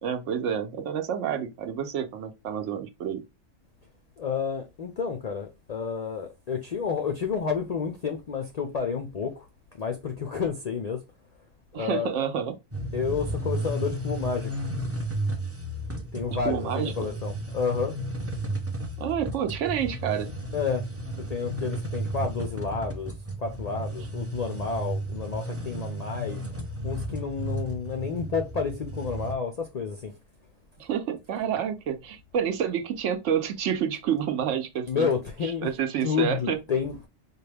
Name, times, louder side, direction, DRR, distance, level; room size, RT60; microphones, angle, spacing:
voice 1, 0.0-3.2 11.7-12.5 16.3-17.1 19.0-20.3 30.8-35.1 35.4-36.6, right 8 dB, 75° right, 1.0 m, -29 dB
voice 2, 4.2-9.5 9.8-11.0 11.7-12.1 12.9-14.5 16.1-17.9 20.5-20.8 21.2-23.1 23.4-26.4 26.8-30.1 34.9-35.7 36.0-37.0, left 6 dB, 60° left, 0.4 m, -30 dB
sound 1, 12.7-29.3, right 1 dB, 20° right, 0.4 m, -33 dB
4.1 x 2.3 x 3.3 m
omnidirectional pair, 1.3 m